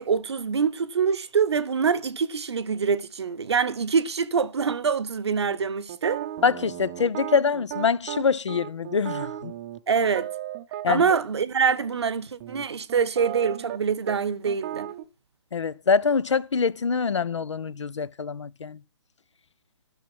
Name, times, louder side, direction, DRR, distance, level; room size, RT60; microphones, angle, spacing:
voice 1, 0.0-6.2 9.9-10.3 10.9-14.9, right 6 dB, 65° right, 0.8 m, -25 dB
sound 1, 5.9-11.2 11.7-11.9 12.4-13.8 14.1-14.2 14.5-15.0, right 12 dB, 25° right, 0.6 m, -35 dB
voice 2, 6.4-9.5 10.8-11.0 15.5-18.8, left 5 dB, 75° left, 0.5 m, -24 dB
11.5 x 6.4 x 5.8 m
figure-of-eight pair, 135°, 15 cm